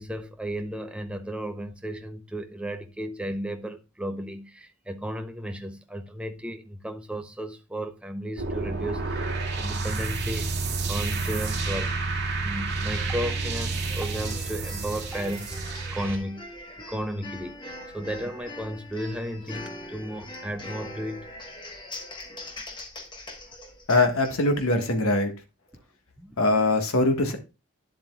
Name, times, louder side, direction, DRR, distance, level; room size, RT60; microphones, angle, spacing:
voice 1, 0.0-9.3 9.6-10.6 10.9-12.1 12.4-15.6 15.9-16.5 16.9-21.3 26.2-26.6, equal, 5° right, 0.6 m, -34 dB
sound 1, 8.4-16.2, right 3 dB, 50° right, 2.1 m, -30 dB
sound 2, 13.2-24.9, left 1 dB, 20° left, 1.2 m, -42 dB
voice 2, 23.9-25.3 26.4-27.4, left 2 dB, 80° left, 1.4 m, -22 dB
10.0 x 7.7 x 2.3 m
head